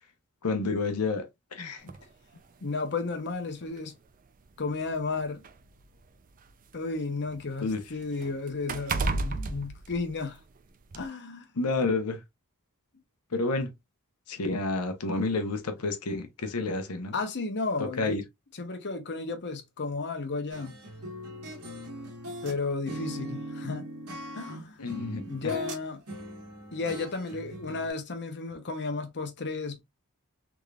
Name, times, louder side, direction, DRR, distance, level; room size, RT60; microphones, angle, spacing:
voice 1, 0.4-1.3 1.5-1.9 7.6-7.8 11.6-12.2 13.3-13.7 14.3-17.1 17.8-18.2 24.8-25.6, left 3 dB, 80° left, 0.9 m, -30 dB
sound 1, 1.9-2.1 3.1-3.2 3.7-3.8 4.7-6.7 7.1-10.5 10.9-11.1, right 3 dB, 40° right, 0.5 m, -34 dB
voice 2, 2.6-3.9 4.6-5.4 6.7-10.4 11.0-11.5 17.1-18.2 18.6-20.8 22.4-23.9 24.3-26.0 26.7-29.8, left 3 dB, 50° left, 0.9 m, -33 dB
sound 2, 20.5-22.6 22.9-25.8 26.1-27.9, right 1 dB, 90° right, 1.5 m, -40 dB
3.6 x 3.3 x 2.4 m
head